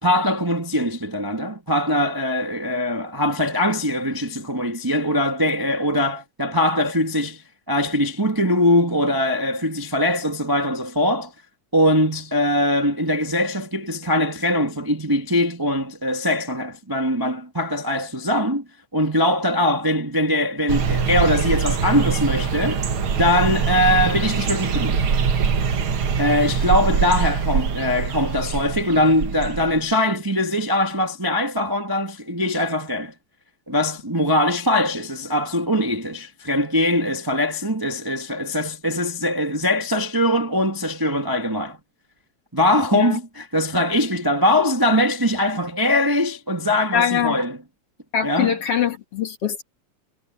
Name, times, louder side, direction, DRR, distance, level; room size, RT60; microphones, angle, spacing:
voice 1, 0.0-11.3 11.7-18.6 18.9-22.8 23.2-25.0 26.2-33.1 33.7-41.8 42.5-47.6 48.2-48.5, left 1 dB, 10° right, 1.0 m, -22 dB
sound 1, 20.7-29.8, right 6 dB, 50° right, 2.1 m, -23 dB
voice 2, 46.9-47.4 48.1-49.6, left 8 dB, 55° left, 3.0 m, -23 dB
omnidirectional pair, 3.4 m